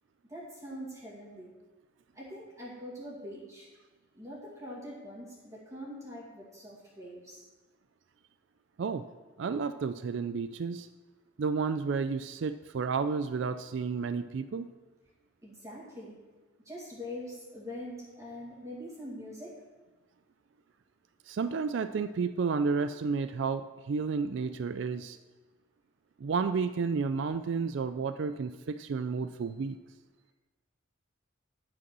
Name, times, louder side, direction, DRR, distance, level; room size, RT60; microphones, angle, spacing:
voice 1, 0.3-1.5 2.1-3.7 4.2-7.4 15.4-16.1 16.7-19.5, equal, 15° right, -6 dB, 2.3 m, -43 dB
voice 2, 9.4-10.9 11.4-14.7 21.3-25.2 26.2-29.8, right 5 dB, 60° right, 10 dB, 0.4 m, -31 dB
11.5 x 5.1 x 6.1 m, 1.2 s
head